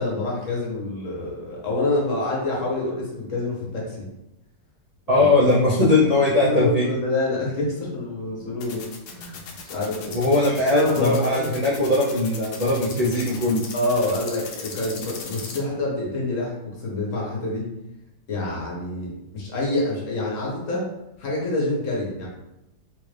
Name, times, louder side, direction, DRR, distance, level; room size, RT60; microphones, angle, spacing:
voice 1, 0.0-4.1 5.2-5.3 6.4-8.9 9.1-10.2 10.7-11.3 13.7-17.7 18.3-20.9 21.2-22.3, left 2 dB, 55° left, -4 dB, 1.2 m, -26 dB
voice 2, 5.1-6.9 10.1-13.6, left 2 dB, 45° right, -8 dB, 0.5 m, -20 dB
sound 1, 8.6-15.6, left 6 dB, 80° left, 1.2 m, -37 dB
3.4 x 2.5 x 3.3 m, 0.90 s
omnidirectional pair, 1.7 m